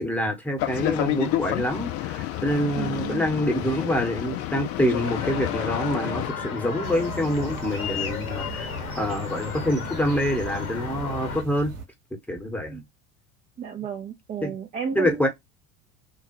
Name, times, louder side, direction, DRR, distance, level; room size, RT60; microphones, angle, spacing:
voice 1, 0.0-8.7 9.0-11.7 12.3-12.8 14.4-14.5 14.9-15.3, equal, 5° left, 1.0 m, -26 dB
Boat Water vehicle, 0.6-6.3, left 14 dB, 35° left, 0.5 m, -30 dB
voice 2, 2.8-3.3 12.7-12.8 13.6-15.3, right 7 dB, 20° right, 0.5 m, -33 dB
sound 1, 5.0-11.4, left 6 dB, 75° left, 0.9 m, -33 dB
sound 2, 6.8-11.9, right 2 dB, 80° right, 0.9 m, -39 dB
3.5 x 2.3 x 2.9 m
figure-of-eight pair, 70°, 44 cm